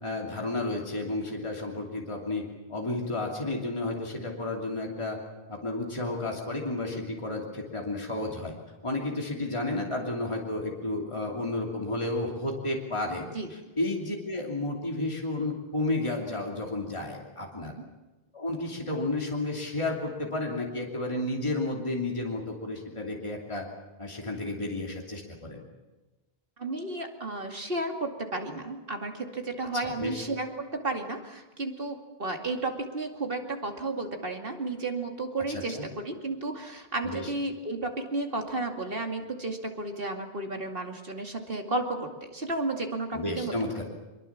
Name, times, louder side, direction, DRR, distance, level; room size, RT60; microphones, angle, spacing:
voice 1, 0.0-5.2 5.5-8.5 8.8-13.2 13.5-17.7 18.3-23.7 24.0-25.6 29.8-30.2 35.5-35.9 37.0-37.3 43.1-43.8, left 2 dB, 30° left, -1 dB, 3.0 m, -32 dB
voice 2, 26.6-35.8 36.0-43.5, right 2 dB, 65° right, 3 dB, 2.6 m, -33 dB
23.5 x 23.0 x 7.4 m, 1.1 s
omnidirectional pair, 1.0 m